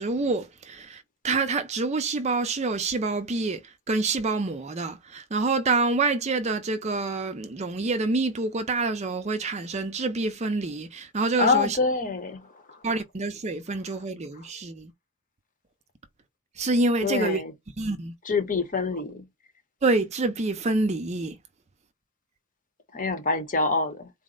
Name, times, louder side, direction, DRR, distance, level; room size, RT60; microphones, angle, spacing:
voice 1, 0.0-3.6 3.9-11.8 12.8-14.9 16.6-17.4 17.8-18.1 19.8-21.4, right 3 dB, 30° right, 0.5 m, -27 dB
voice 2, 11.4-12.8 17.0-17.5 18.2-19.2 22.9-24.1, left 4 dB, 40° left, 0.9 m, -26 dB
4.1 x 2.1 x 3.7 m
head